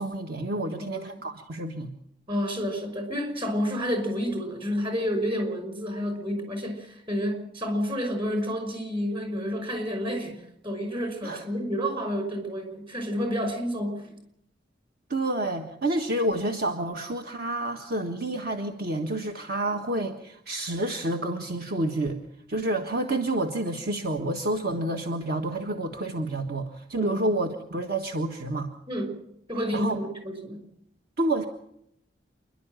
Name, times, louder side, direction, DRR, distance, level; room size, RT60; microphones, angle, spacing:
voice 1, 0.0-1.9 11.2-11.5 15.1-22.2 22.5-28.7 29.7-30.0 31.2-31.5, right 1 dB, 55° right, 5 dB, 1.5 m, -29 dB
voice 2, 2.3-14.1 27.0-27.2 28.9-29.2 29.5-30.6, equal, 30° right, 6 dB, 5.5 m, -30 dB
27.5 x 11.5 x 9.0 m, 0.74 s
head